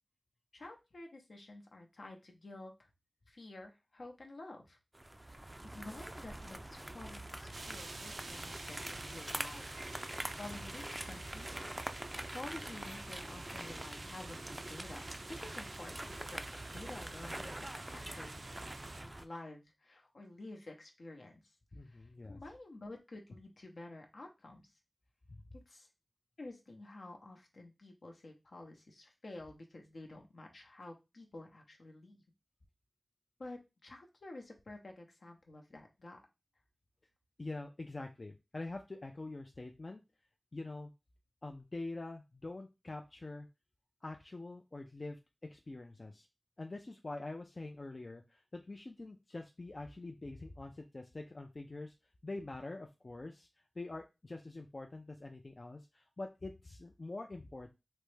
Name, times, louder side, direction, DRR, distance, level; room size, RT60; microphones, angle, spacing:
voice 1, 0.5-2.9 3.3-4.8 5.2-9.7 10.4-11.7 12.3-16.4 16.7-18.7 19.0-21.4 21.8-24.7 25.5-25.9 26.4-32.2 33.4-36.2, left 2 dB, 80° left, 2 dB, 0.7 m, -50 dB
sound 1, 4.9-19.3, right 1 dB, 25° right, 0.3 m, -44 dB
sound 2, 7.5-19.0, right 2 dB, 90° right, 0.4 m, -51 dB
voice 2, 21.7-22.4 37.4-40.0 40.5-40.9 41.4-43.5 44.0-45.2 45.5-46.3 46.6-51.9 52.2-53.5 53.8-57.7, left 2 dB, 55° left, 3 dB, 0.4 m, -45 dB
3.3 x 2.1 x 3.2 m, 0.25 s
cardioid pair, 40°, 0 cm